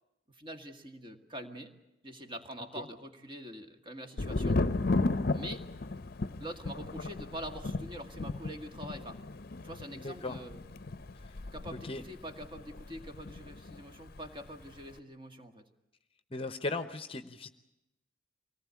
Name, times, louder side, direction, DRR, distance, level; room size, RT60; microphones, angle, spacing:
voice 1, 0.3-1.7 2.0-4.6 5.3-5.6 6.4-9.2 9.6-10.6 11.5-15.6, equal, 25° right, 5 dB, 2.0 m, -44 dB
Thunder, 4.2-13.8 14.1-14.8, left 2 dB, 50° left, 0.7 m, -35 dB
voice 2, 9.9-10.4 11.1-11.3 11.8-12.0 16.3-17.5, left 3 dB, 30° left, 10 dB, 0.9 m, -37 dB
24.0 x 18.5 x 8.4 m, 0.93 s
head